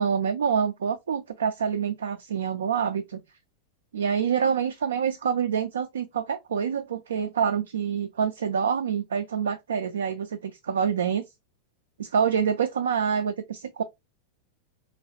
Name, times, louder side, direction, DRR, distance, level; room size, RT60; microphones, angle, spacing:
voice 1, 0.0-3.2 3.9-11.3 12.0-13.8, right 7 dB, 65° right, 0.3 m, -26 dB
3.2 x 3.0 x 2.7 m
figure-of-eight pair, 90°, 0 cm